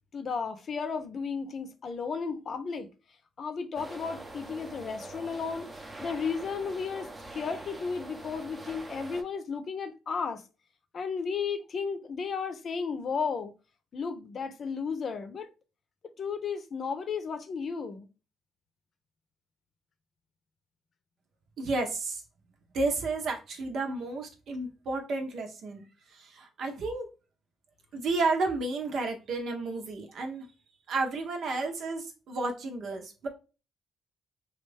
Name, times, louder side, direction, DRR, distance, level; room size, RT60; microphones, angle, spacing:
voice 1, 0.1-2.9 3.4-5.7 6.0-10.4 10.9-13.5 13.9-15.5 16.2-18.1, left 5 dB, 50° left, 0.6 m, -34 dB
sound 1, 3.8-9.2, right 2 dB, 20° right, 0.7 m, -44 dB
voice 2, 21.6-22.2 22.7-25.8 26.1-27.1 27.9-30.5 30.9-33.3, right 3 dB, 65° right, 0.9 m, -32 dB
3.1 x 2.5 x 3.3 m
cardioid pair, 90°, 0 cm